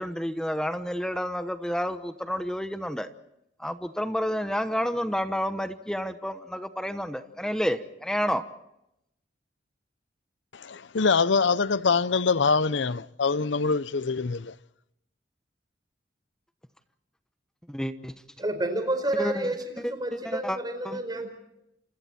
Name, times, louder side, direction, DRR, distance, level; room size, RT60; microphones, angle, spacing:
voice 1, 0.0-3.1 3.6-8.4 17.7-18.1 19.2-19.3 20.2-20.6 20.8-21.0, equal, 5° left, 1.0 m, -30 dB
voice 2, 10.5-14.5, left 4 dB, 80° left, 0.8 m, -24 dB
voice 3, 18.4-21.3, right 1 dB, 25° right, 4.6 m, -30 dB
29.5 x 28.0 x 4.4 m
head